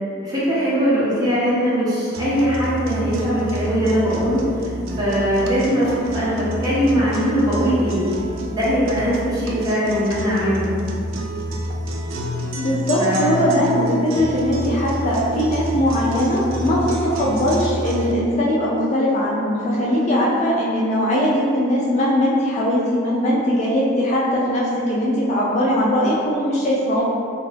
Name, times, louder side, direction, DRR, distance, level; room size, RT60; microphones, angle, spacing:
voice 1, 0.2-4.4 5.0-8.0 8.5-10.7 12.9-13.3, equal, 20° right, -10 dB, 0.8 m, -20 dB
sound 1, 2.1-18.1, equal, 80° right, 0.4 m, -28 dB
voice 2, 12.5-27.0, equal, 35° left, -6 dB, 0.4 m, -20 dB
2.7 x 2.4 x 3.3 m, 2.4 s
head